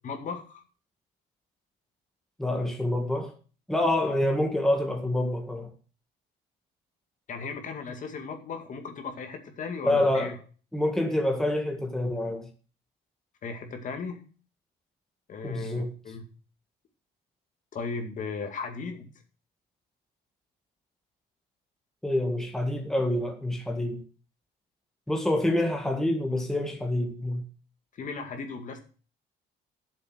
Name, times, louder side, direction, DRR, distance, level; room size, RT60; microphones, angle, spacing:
voice 1, 0.0-0.6 7.3-10.4 13.4-14.2 15.3-16.2 17.7-19.1 28.0-28.8, left 4 dB, 50° left, 2.3 m, -36 dB
voice 2, 2.4-3.3 3.7-5.7 9.8-10.4 10.7-12.5 15.4-15.9 22.0-24.0 25.1-27.4, left 1 dB, 5° left, 1.7 m, -27 dB
10.5 x 7.4 x 6.3 m
cardioid pair, 110°, 17 cm